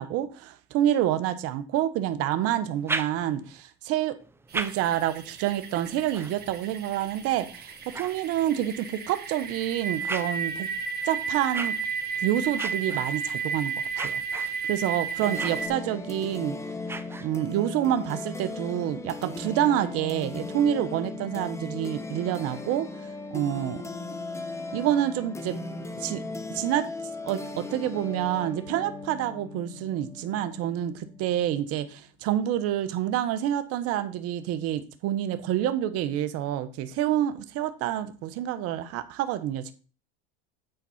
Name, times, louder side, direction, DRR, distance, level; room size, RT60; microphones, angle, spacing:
voice 1, 0.0-4.1 4.5-10.7 11.0-11.8 12.2-13.7 14.0-16.6 17.2-23.8 24.7-25.6 26.0-26.2 26.5-26.8 27.2-39.7, right 11 dB, 50° right, 1.1 m, -28 dB
sound 1, 2.6-3.6 4.2-8.8 9.4-17.7, right 3 dB, 10° right, 0.5 m, -40 dB
sound 2, 4.5-15.7, right 5 dB, 30° right, 1.8 m, -33 dB
sound 3, 15.2-31.8, left 2 dB, 10° left, 0.8 m, -37 dB
9.2 x 4.1 x 5.7 m
supercardioid pair, 115°, 31 cm